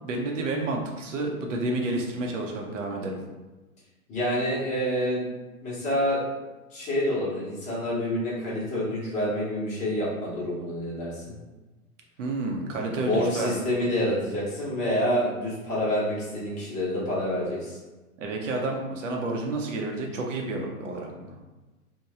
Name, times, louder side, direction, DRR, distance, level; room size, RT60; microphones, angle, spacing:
voice 1, 0.0-3.2 12.2-13.5 18.2-21.3, right 2 dB, 55° right, 1 dB, 0.7 m, -30 dB
voice 2, 4.1-5.2 5.6-6.3 6.7-11.4 12.9-17.8, equal, 15° left, -7 dB, 0.8 m, -27 dB
3.0 x 2.2 x 3.4 m, 1.2 s
figure-of-eight pair, 110°, 44 cm